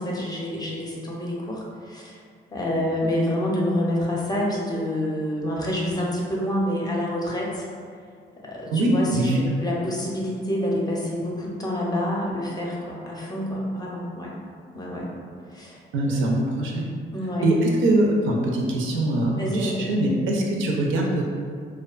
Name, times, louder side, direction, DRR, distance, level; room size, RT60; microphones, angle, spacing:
voice 1, 0.0-2.2 2.5-7.7 8.4-14.4 14.7-15.1 15.5-16.2 17.1-17.5 19.3-19.9, left 1 dB, 20° left, -4 dB, 0.5 m, -27 dB
voice 2, 8.7-9.4 15.9-16.9 17.4-21.2, right 1 dB, 75° right, -1 dB, 0.5 m, -22 dB
2.4 x 2.3 x 2.3 m, 2.1 s
cardioid pair, 90°, 20 cm